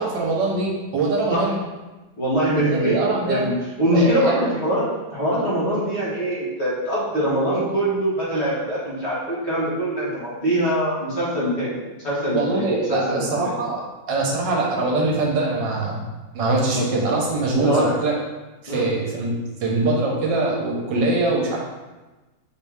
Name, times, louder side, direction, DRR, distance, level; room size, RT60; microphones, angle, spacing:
voice 1, 0.0-1.6 2.6-3.4 3.9-4.6 12.3-13.8 14.1-16.1 16.3-18.1 18.6-21.6, right 3 dB, 75° right, -2 dB, 1.4 m, -23 dB
voice 2, 2.2-3.5 3.8-4.8 5.1-11.7 12.0-13.5 16.7-16.8 17.6-17.9 18.7-18.9, equal, 40° left, -9 dB, 1.4 m, -23 dB
4.6 x 2.7 x 3.4 m, 1.2 s
omnidirectional pair, 2.0 m